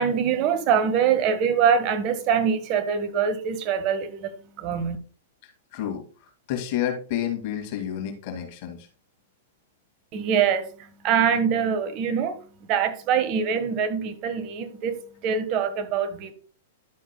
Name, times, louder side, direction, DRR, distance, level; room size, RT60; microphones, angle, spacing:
voice 1, 0.0-5.0 10.1-12.4 12.7-16.3, right 7 dB, 40° right, 1.3 m, -24 dB
voice 2, 5.4-6.0 6.5-8.9, left 10 dB, 50° left, 2.1 m, -30 dB
11.5 x 7.1 x 2.2 m
hypercardioid pair, 120°, 0 cm